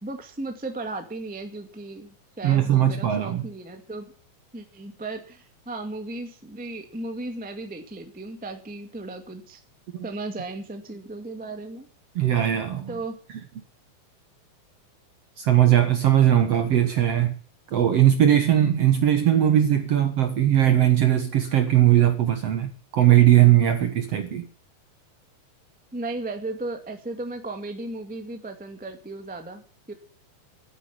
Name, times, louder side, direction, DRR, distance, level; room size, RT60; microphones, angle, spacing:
voice 1, 0.0-4.1 4.5-9.6 10.0-11.9 12.9-13.1 25.9-29.6 29.9-30.0, right 2 dB, 5° right, 0.6 m, -35 dB
voice 2, 2.4-3.4 9.9-10.1 12.1-13.0 15.4-17.4 17.7-24.5, right 11 dB, 60° right, 1.7 m, -19 dB
12.0 x 9.9 x 8.4 m
omnidirectional pair, 4.3 m